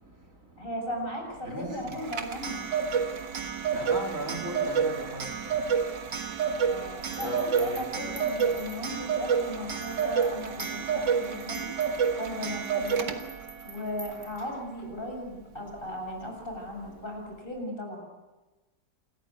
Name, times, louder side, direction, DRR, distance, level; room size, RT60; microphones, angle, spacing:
voice 1, 0.0-0.7 1.4-1.9 3.7-8.4 13.2-13.3, equal, 50° right, 0 dB, 3.7 m, -39 dB
voice 2, 0.6-2.6 6.7-11.7 12.1-13.2 13.6-18.1, left 1 dB, 30° left, 1 dB, 6.9 m, -37 dB
Clock, 1.9-13.5, right 6 dB, 85° right, 2.3 m, -29 dB
sound 1, 6.4-9.2 9.7-14.8, right 1 dB, 10° right, 4.0 m, -48 dB
28.5 x 14.0 x 9.2 m, 1.1 s
omnidirectional pair, 1.9 m